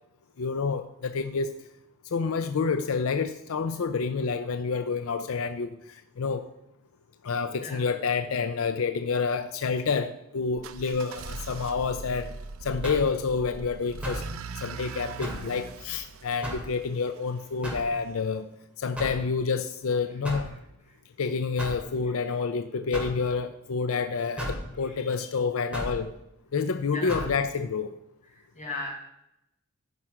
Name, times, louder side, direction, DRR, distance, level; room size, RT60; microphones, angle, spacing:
voice 1, 0.4-1.5 2.1-5.8 6.2-6.4 7.2-12.3 12.6-14.2 14.6-18.4 18.8-20.5 21.2-26.1 26.5-27.9, left 5 dB, 90° left, 9 dB, 0.5 m, -28 dB
voice 2, 7.6-7.9 22.0-22.4 24.8-25.1 26.9-27.3 28.3-28.9, left 2 dB, 35° left, -3 dB, 4.0 m, -38 dB
sound 1, 10.6-17.5, right 4 dB, 85° right, 0.5 m, -40 dB
sound 2, 12.8-13.1 14.0-14.3 15.2-15.5 16.4-16.7 17.6-17.9 19.0-19.2 20.2-20.5 21.6-21.8 22.9-23.2 24.4-24.6 25.7-26.0 27.1-27.3, equal, 5° right, 2.6 m, -34 dB
13.5 x 5.8 x 4.9 m, 0.85 s
head